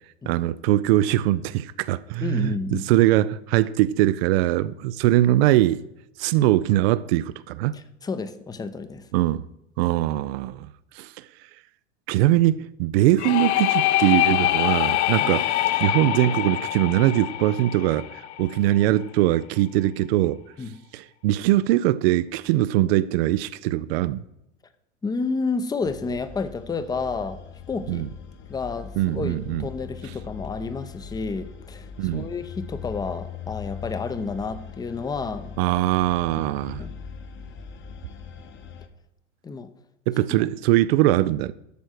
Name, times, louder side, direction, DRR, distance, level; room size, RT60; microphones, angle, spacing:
voice 1, 0.3-5.8 6.2-7.8 9.1-9.4 9.8-10.7 10.9-11.3 12.1-15.5 15.8-20.4 20.9-24.2 27.9-28.1 29.0-29.7 32.0-32.3 35.6-36.8 40.1-41.5, right 14 dB, 55° right, 0.5 m, -22 dB
voice 2, 2.2-2.8 7.7-9.1 15.2-15.3 20.6-20.8 25.0-27.4 27.7-28.1 28.5-35.6 36.8-36.9 39.4-39.7, left 4 dB, 10° left, 0.6 m, -30 dB
sound 1, 13.2-18.8, left 15 dB, 65° left, 0.6 m, -24 dB
sound 2, 25.8-38.9, left 7 dB, 30° left, 1.0 m, -40 dB
8.4 x 6.3 x 6.2 m
hypercardioid pair, 95°, 38 cm